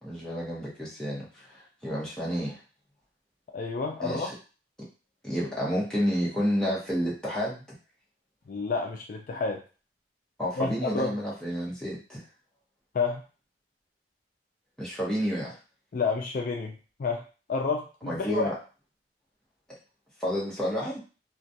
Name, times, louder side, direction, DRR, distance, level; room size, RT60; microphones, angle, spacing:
voice 1, 0.0-2.6 4.0-4.3 5.2-7.6 10.4-12.2 14.8-15.6 18.1-18.5 20.2-21.0, equal, 5° left, -6 dB, 0.8 m, -30 dB
voice 2, 3.5-4.3 8.5-9.6 10.6-11.1 12.9-13.2 15.9-17.2 17.5-18.5, left 4 dB, 50° left, 1 dB, 0.3 m, -30 dB
2.3 x 2.2 x 2.6 m, 0.34 s
head